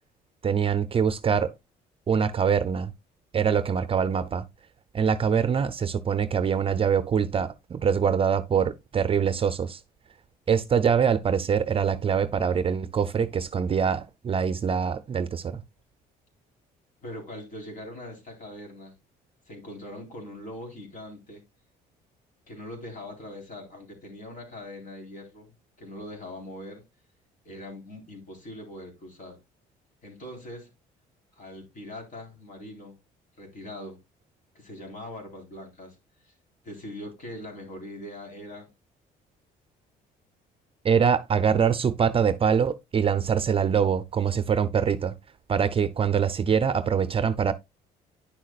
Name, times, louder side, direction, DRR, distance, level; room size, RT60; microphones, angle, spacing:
voice 1, 0.4-1.5 2.1-2.9 3.3-4.4 4.9-9.8 10.5-15.6 40.8-45.2 45.5-47.5, right 7 dB, 35° right, 0.6 m, -24 dB
voice 2, 17.0-18.9 19.5-21.4 22.5-26.8 27.4-29.4 30.0-30.7 31.3-33.0 33.4-34.0 34.5-36.0 36.2-36.3 36.6-38.7, left 1 dB, 50° left, 4.3 m, -41 dB
10.0 x 6.4 x 2.4 m
cardioid pair, 110°, 17 cm